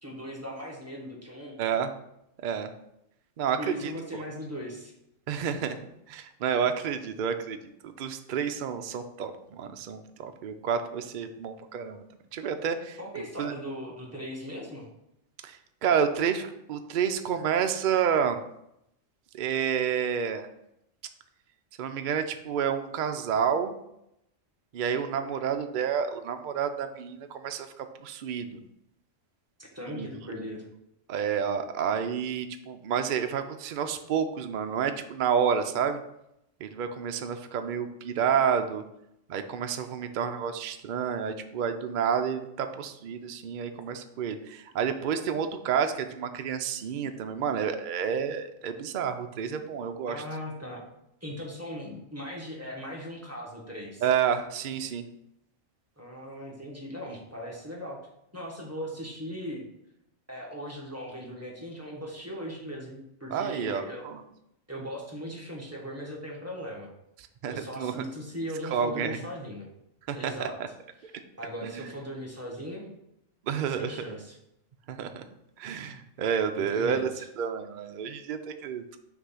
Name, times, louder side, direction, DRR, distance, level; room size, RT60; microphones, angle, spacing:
voice 1, 0.0-1.6 3.6-4.9 13.0-14.9 29.6-30.7 50.1-50.8 51.2-54.0 56.0-58.0 58.3-59.6 60.3-64.0 64.7-66.9 67.5-69.7 70.1-70.6 71.0-72.9 73.7-74.4 76.6-77.3, equal, 10° right, -3 dB, 1.2 m, -38 dB
voice 2, 1.6-1.9 2.4-2.7 3.4-3.9 5.3-5.8 6.1-12.0 12.3-13.0 13.4-13.5 15.4-18.4 19.3-20.5 21.8-23.8 24.7-28.6 29.9-30.1 31.1-36.0 36.6-38.8 39.3-50.2 54.0-55.0 63.3-64.2 67.4-68.0 68.7-69.2 70.1-70.5 71.6-71.9 73.5-74.0 74.9-75.2 75.6-77.1 77.4-79.0, right 7 dB, 60° right, 7 dB, 0.5 m, -29 dB
6.0 x 3.2 x 5.6 m, 0.81 s
omnidirectional pair, 1.3 m